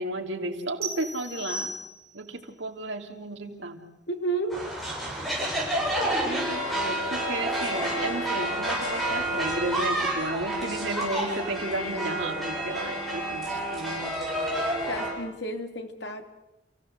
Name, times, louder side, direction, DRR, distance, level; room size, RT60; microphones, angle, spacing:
voice 1, 0.0-1.7 2.1-3.8 6.2-14.2, right 2 dB, 85° right, 4 dB, 2.9 m, -33 dB
sound 1, 0.8-2.3, right 2 dB, 55° right, 5.7 m, -36 dB
voice 2, 4.1-4.6 6.0-6.9 14.9-16.2, right 2 dB, 70° left, 5 dB, 2.7 m, -33 dB
sound 2, 4.5-15.1, right 1 dB, ahead, 7.6 m, -29 dB
29.5 x 16.5 x 7.9 m, 0.91 s
head